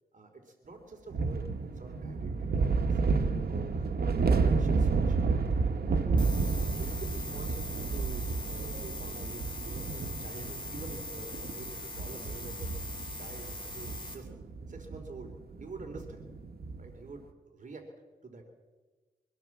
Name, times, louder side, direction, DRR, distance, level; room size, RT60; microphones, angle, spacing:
voice 1, 0.1-5.2 5.7-6.1 6.5-12.7 13.2-14.3 14.7-16.3 16.8-17.9 18.2-18.4, right 3 dB, 50° right, 4 dB, 3.6 m, -47 dB
sound 1, 1.1-16.9, right 4 dB, 70° right, 1.6 m, -31 dB
sound 2, 6.2-14.2, left 2 dB, 30° left, 5.6 m, -41 dB
24.0 x 17.0 x 7.4 m, 1.3 s
cardioid pair, 80°, 17 cm